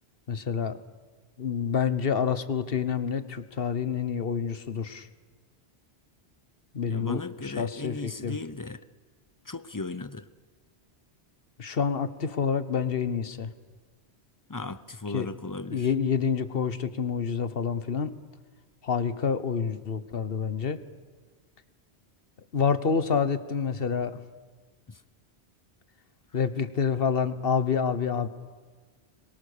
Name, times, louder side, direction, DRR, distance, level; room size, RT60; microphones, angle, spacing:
voice 1, 0.3-0.8 1.4-5.1 6.7-8.4 11.6-13.5 15.1-15.3 15.7-18.1 18.8-20.8 22.5-24.2 26.3-28.3, left 6 dB, 60° left, 13 dB, 1.4 m, -28 dB
voice 2, 6.9-8.8 9.4-10.3 14.5-15.9 24.9-25.0, left 3 dB, 20° left, 15 dB, 0.7 m, -36 dB
25.5 x 22.5 x 6.7 m, 1.5 s
omnidirectional pair, 1.1 m